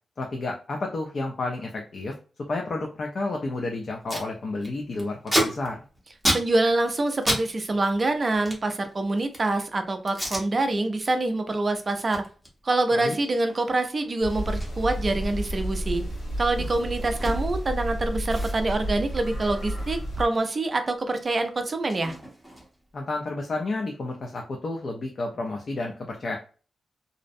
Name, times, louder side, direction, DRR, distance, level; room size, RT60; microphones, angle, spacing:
voice 1, 0.2-2.2 2.5-5.8 12.9-13.2 22.9-26.4, left 2 dB, 45° left, 1 dB, 0.4 m, -31 dB
Packing tape duct tape, 3.5-3.6 3.8-4.3 4.6-7.5 7.7-9.5 10.1-10.5 10.9-11.1 11.5-17.7 18.0-18.1 18.3-20.7 20.9-22.9, equal, 5° left, 0.7 m, -33 dB
voice 2, 6.3-12.2 12.6-16.0 16.4-22.1, right 2 dB, 30° right, 7 dB, 0.4 m, -25 dB
sound 1, 14.2-20.3, equal, 65° left, 0.9 m, -31 dB
2.5 x 2.0 x 2.5 m, 0.37 s
wide cardioid pair, 150°, 0 cm